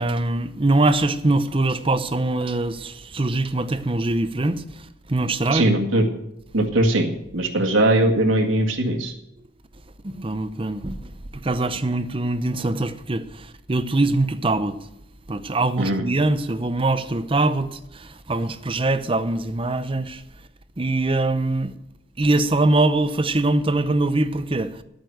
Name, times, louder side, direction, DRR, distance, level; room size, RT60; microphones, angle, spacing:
voice 1, 0.0-5.7 10.0-14.8 15.3-20.2 20.8-21.7 22.2-24.8, right 2 dB, 25° right, 0.7 m, -23 dB
voice 2, 5.5-6.1 6.5-7.1 7.3-9.1 15.8-16.0, right 1 dB, 80° right, 1.9 m, -20 dB
11.0 x 9.0 x 7.9 m
head